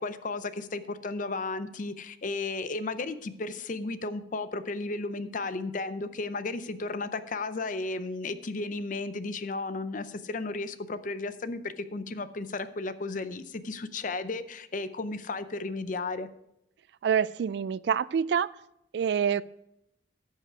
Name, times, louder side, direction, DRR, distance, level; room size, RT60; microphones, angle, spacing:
voice 1, 0.0-16.3, left 3 dB, 45° left, 12 dB, 0.6 m, -34 dB
voice 2, 17.0-18.5 18.9-19.4, right 7 dB, 70° right, 19 dB, 0.3 m, -26 dB
14.5 x 5.6 x 4.8 m, 0.81 s
head